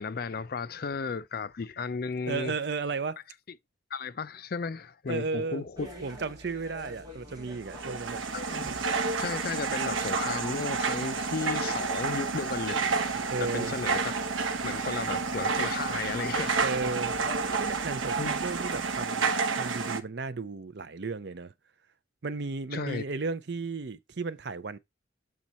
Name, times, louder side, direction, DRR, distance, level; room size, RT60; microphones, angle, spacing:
voice 1, 0.0-2.5 3.9-5.9 8.3-8.7 9.2-12.9 13.4-14.1 14.6-16.6 18.2-18.3 22.7-23.2, left 5 dB, 50° left, 0.4 m, -34 dB
voice 2, 2.3-3.2 5.1-5.6 6.0-8.2 13.3-13.7 16.6-17.2 17.6-21.5 22.2-24.8, right 4 dB, 60° right, 0.6 m, -34 dB
sound 1, 5.7-19.1, right 1 dB, 20° right, 1.8 m, -47 dB
sound 2, 7.6-20.0, right 4 dB, 90° right, 0.8 m, -30 dB
7.6 x 4.0 x 4.1 m
head